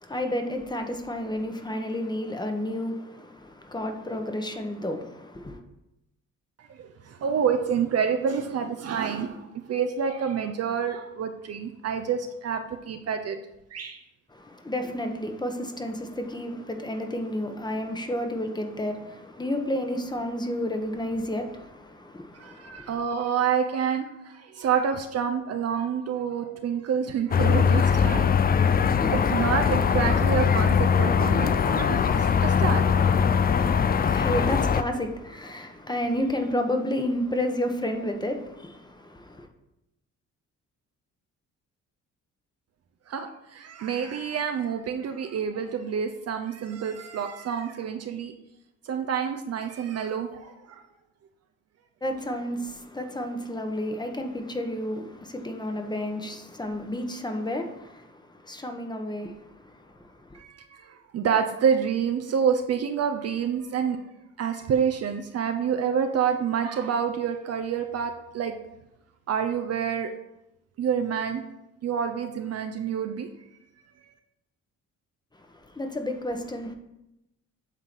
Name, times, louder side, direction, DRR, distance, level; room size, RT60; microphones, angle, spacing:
voice 1, 0.0-5.6 14.3-23.0 34.0-39.5 52.0-60.4 75.4-76.7, left 1 dB, 15° left, 1.1 m, -31 dB
voice 2, 6.8-13.4 13.7-14.0 22.3-28.5 29.1-34.2 43.1-48.3 48.8-50.8 60.3-64.0 64.4-68.6 69.3-70.1 70.8-71.4 71.8-73.3, right 7 dB, 55° right, 0.7 m, -28 dB
sound 1, 27.3-34.8, left 6 dB, 30° left, 0.4 m, -21 dB
8.2 x 3.7 x 6.1 m
cardioid pair, 90°, 30 cm